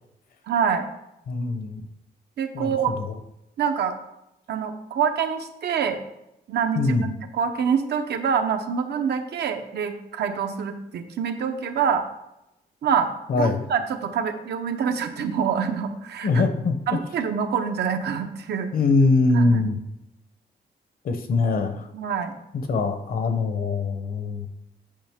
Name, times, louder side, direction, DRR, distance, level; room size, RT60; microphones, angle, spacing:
voice 1, 0.5-0.9 2.4-2.9 3.6-3.9 4.5-6.0 6.5-12.0 12.8-13.1 13.4-16.4 16.9-18.7 19.3-19.6 21.9-22.4, right 7 dB, 75° right, 6 dB, 0.8 m, -26 dB
voice 2, 1.3-1.8 2.5-3.2 6.8-7.1 13.3-13.7 16.2-17.0 18.7-19.8 21.0-21.9 22.5-24.5, left 3 dB, 55° left, 7 dB, 0.8 m, -23 dB
8.7 x 5.7 x 3.5 m, 0.89 s
wide cardioid pair, 170°, 17 cm